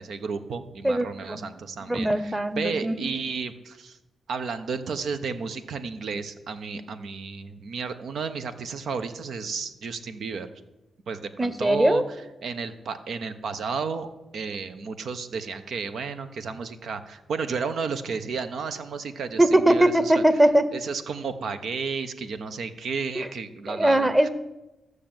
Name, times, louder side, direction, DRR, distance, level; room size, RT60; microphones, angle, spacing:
voice 1, 0.0-4.0 4.3-10.5 11.1-14.1 14.3-20.2 20.7-24.3, right 5 dB, 75° right, 10 dB, 1.1 m, -32 dB
voice 2, 0.8-1.4 1.9-3.2 11.4-12.0 19.4-20.7 23.2-23.3 23.7-24.3, right 1 dB, 15° right, 12 dB, 1.1 m, -21 dB
13.5 x 6.6 x 9.0 m, 1.0 s
cardioid pair, 90°, 0 cm